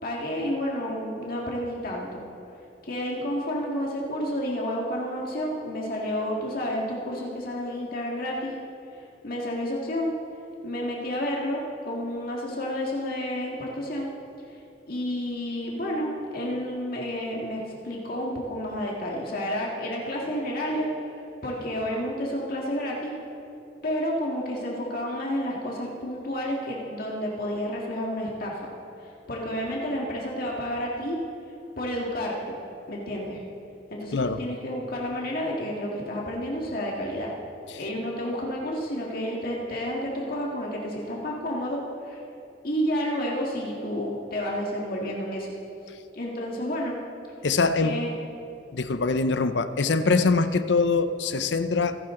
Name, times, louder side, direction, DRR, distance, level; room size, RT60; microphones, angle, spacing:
voice 1, 0.0-2.2 2.8-8.6 9.2-10.1 10.6-14.1 14.9-23.2 23.8-28.7 29.0-31.2 31.8-32.6 32.9-33.4 33.9-37.3 37.8-42.2 42.6-45.5 46.1-47.0 47.8-48.1, equal, 55° left, -2 dB, 1.9 m, -30 dB
voice 2, 47.4-48.0 48.7-52.0, left 4 dB, 80° left, 12 dB, 0.7 m, -23 dB
25.0 x 11.5 x 3.8 m, 2.8 s
head